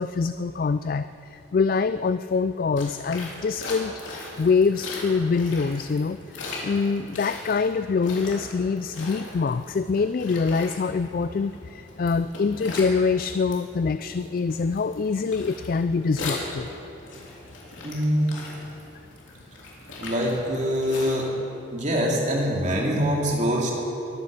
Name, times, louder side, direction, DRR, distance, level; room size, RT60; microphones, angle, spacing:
voice 1, 0.0-3.9 4.4-6.2 6.6-16.7, left 4 dB, 45° left, 12 dB, 0.3 m, -24 dB
sound 1, 2.8-21.2, left 2 dB, 80° left, 3.7 m, -39 dB
voice 2, 17.8-18.2 20.0-21.3 21.7-23.7, equal, 40° right, -2 dB, 2.7 m, -24 dB
22.0 x 9.7 x 6.7 m, 3.0 s
head